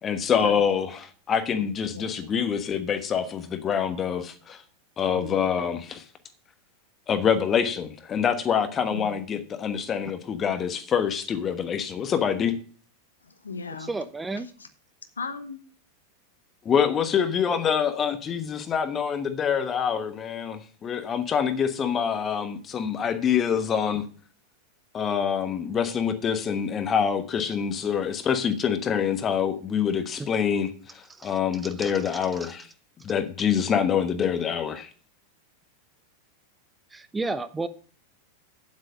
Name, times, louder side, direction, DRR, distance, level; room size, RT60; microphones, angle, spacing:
voice 1, 0.0-4.6 5.0-6.0 7.1-12.5 16.6-24.0 24.9-32.7 33.0-34.9, left 7 dB, 25° left, 1.2 m, -26 dB
voice 2, 1.9-2.3 5.1-5.4 8.9-9.2 13.2-13.9 14.6-14.7 15.2-15.6, left 4 dB, 75° left, 1.2 m, -37 dB
voice 3, 13.8-14.5 30.2-30.3 31.1-31.3 31.8-32.0 32.4-32.5 36.9-37.7, right 3 dB, 10° right, 0.6 m, -32 dB
8.8 x 7.9 x 5.4 m
figure-of-eight pair, 90°, 0 cm